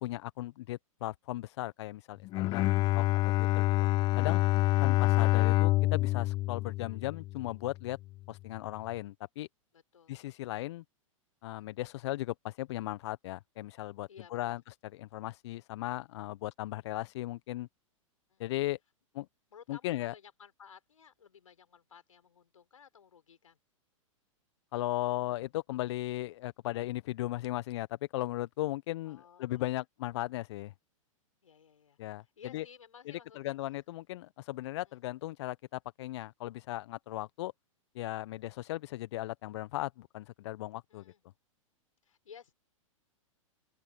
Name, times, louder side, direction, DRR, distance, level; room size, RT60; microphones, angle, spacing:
voice 1, 0.0-2.7 3.0-3.1 3.4-3.9 4.2-4.4 4.8-8.0 8.3-9.5 10.1-10.8 11.4-17.7 18.4-18.8 19.1-19.3 19.7-20.1 24.7-27.9 28.1-30.7 32.0-32.2 32.5-32.6 33.1-37.5 37.9-41.0, left 16 dB, 55° left, 1.0 m, -37 dB
Bowed string instrument, 2.2-7.6, left 17 dB, 25° left, 0.4 m, -27 dB
voice 2, 2.4-3.1 9.7-10.2 14.1-14.6 18.3-18.5 19.5-23.6 29.0-29.8 31.4-33.5 34.9-35.0 40.9-41.2 42.0-42.5, left 7 dB, 75° left, 5.3 m, -56 dB
open air
figure-of-eight pair, 105°, 17 cm